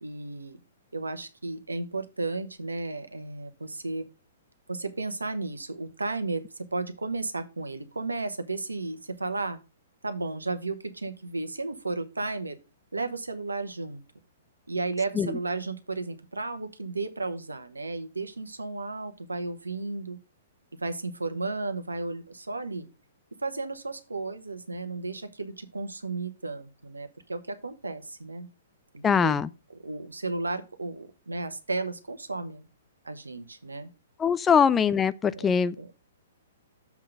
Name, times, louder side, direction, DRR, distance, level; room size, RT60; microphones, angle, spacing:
voice 1, 0.0-0.6 0.9-4.1 4.7-9.6 10.0-12.6 12.9-14.0 14.7-20.2 20.8-22.9 23.4-28.5 28.9-29.5 29.8-32.7 33.0-33.9 35.3-35.9, right 3 dB, 80° right, 1.1 m, -34 dB
voice 2, 29.0-29.5 34.2-35.9, left 7 dB, 15° left, 0.3 m, -22 dB
7.2 x 3.8 x 6.4 m
figure-of-eight pair, 115°, 0 cm